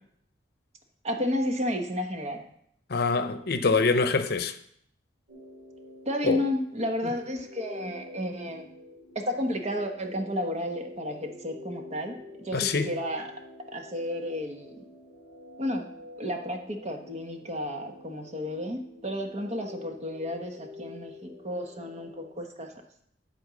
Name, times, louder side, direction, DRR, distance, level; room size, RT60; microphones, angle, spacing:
voice 1, 1.0-2.4 6.0-8.7 9.1-13.3 13.7-14.8 15.6-15.9 16.2-22.7, left 1 dB, 40° right, 1.2 m, -32 dB
voice 2, 2.9-4.5 6.2-6.4 12.5-12.9, left 4 dB, 60° left, 0.7 m, -25 dB
sound 1, 5.3-22.3, left 2 dB, 85° right, 3.1 m, -47 dB
11.5 x 4.4 x 6.2 m
head